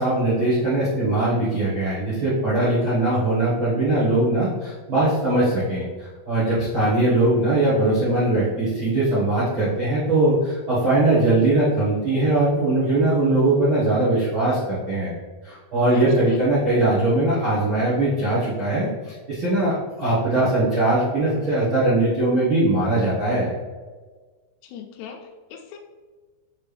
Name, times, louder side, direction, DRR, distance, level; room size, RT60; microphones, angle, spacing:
voice 1, 0.0-15.1 15.4-23.5, right 2 dB, 75° right, -12 dB, 1.1 m, -21 dB
voice 2, 15.9-16.5 24.6-25.8, left 7 dB, 85° left, 1 dB, 2.7 m, -40 dB
6.6 x 4.3 x 3.3 m, 1.4 s
omnidirectional pair, 4.9 m